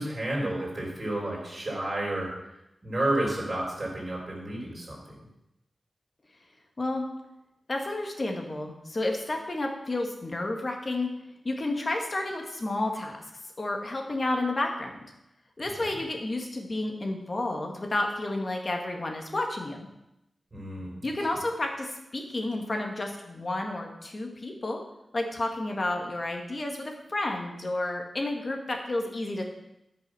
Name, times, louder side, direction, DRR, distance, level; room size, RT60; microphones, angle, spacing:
voice 1, 0.0-2.3 2.8-5.2 15.8-15.9 20.5-20.9, right 1 dB, 30° right, -4 dB, 3.9 m, -31 dB
voice 2, 6.8-7.1 7.7-11.1 11.5-13.1 13.6-15.0 15.6-19.8 21.0-24.8 25.1-29.5, left 2 dB, 35° left, 2 dB, 1.7 m, -31 dB
12.5 x 5.7 x 6.2 m, 0.88 s
wide cardioid pair, 140°, 0 cm